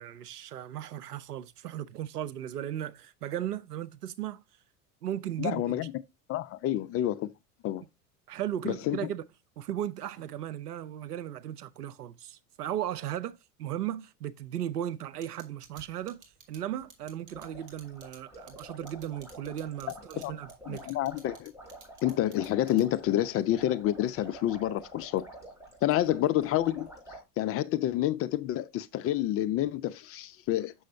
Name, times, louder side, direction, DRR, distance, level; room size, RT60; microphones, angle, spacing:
voice 1, 0.0-4.4 5.0-5.8 8.3-9.2 9.6-21.0, right 11 dB, 80° right, 0.7 m, -36 dB
voice 2, 5.4-5.9 6.3-7.3 7.6-7.9 8.6-9.0 20.2-20.3 20.7-21.5 22.0-25.3 25.8-26.9 27.4-30.7, left 13 dB, 30° left, 0.5 m, -28 dB
sound 1, 15.2-23.1, right 4 dB, 40° right, 2.7 m, -53 dB
sound 2, 17.3-27.2, right 1 dB, 5° right, 5.3 m, -49 dB
7.0 x 6.2 x 2.7 m
figure-of-eight pair, 80°, 46 cm